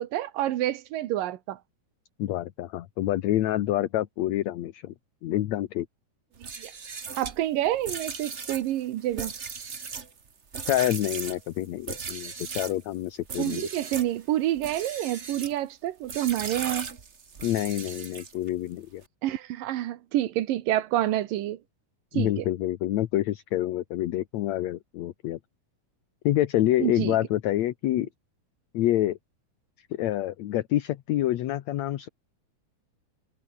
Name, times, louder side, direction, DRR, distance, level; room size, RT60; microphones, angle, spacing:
voice 1, 0.0-1.6 6.4-6.7 7.2-9.3 13.4-16.9 19.2-21.6 22.1-22.5 26.8-27.2, right 13 dB, 85° right, 2.9 m, -28 dB
voice 2, 2.2-4.9 5.2-5.9 10.6-13.7 17.4-19.0 22.1-25.4 26.3-28.1 28.7-29.2 29.9-32.1, left 14 dB, 65° left, 2.0 m, -27 dB
sound 1, 6.3-12.8 13.2-14.1 14.6-15.6 16.1-18.5, right 5 dB, 50° right, 0.8 m, -37 dB
omnidirectional pair, 3.8 m